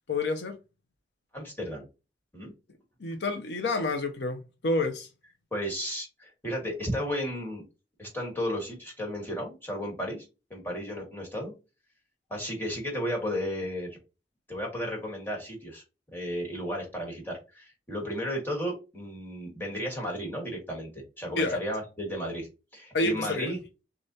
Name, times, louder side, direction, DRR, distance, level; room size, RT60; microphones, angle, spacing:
voice 1, 0.1-0.6 3.0-5.1 21.4-21.6 22.9-23.5, left 2 dB, 75° left, 0.7 m, -28 dB
voice 2, 1.3-1.8 2.3-2.5 5.5-7.6 8.0-10.2 10.5-11.5 12.3-14.0 14.5-15.8 16.1-22.5 22.7-23.6, equal, 10° left, 1.7 m, -34 dB
6.4 x 2.4 x 2.8 m
head